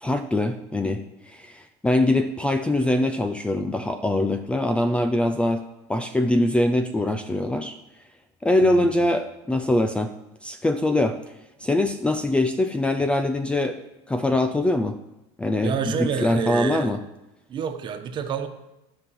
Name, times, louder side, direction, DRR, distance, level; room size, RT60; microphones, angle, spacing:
voice 1, 0.0-5.6 5.9-7.8 8.4-10.1 10.4-11.2 11.6-15.0 15.4-17.0, left 1 dB, 10° left, 8 dB, 0.5 m, -23 dB
voice 2, 8.6-9.1 15.6-17.0 17.5-18.5, right 7 dB, 35° right, 6 dB, 1.3 m, -29 dB
12.5 x 5.5 x 7.5 m, 0.94 s
cardioid pair, 140°, 13 cm